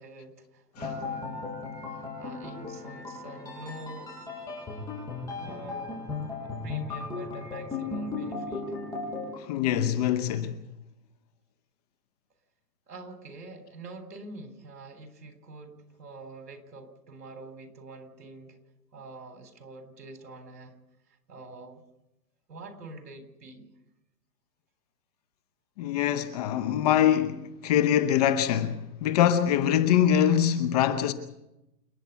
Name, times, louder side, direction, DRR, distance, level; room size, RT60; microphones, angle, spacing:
voice 1, 0.0-1.4 1.8-4.1 5.4-6.1 6.4-8.7 12.9-18.6 18.9-20.8 21.3-21.8 22.5-23.7, right 2 dB, 70° right, 3.8 m, -45 dB
sound 1, 0.8-9.4, left 3 dB, 5° left, 6.8 m, -36 dB
voice 2, 9.4-10.6 25.8-31.1, left 10 dB, 25° left, 0.8 m, -24 dB
28.5 x 9.9 x 9.4 m
hypercardioid pair, 150°, 49 cm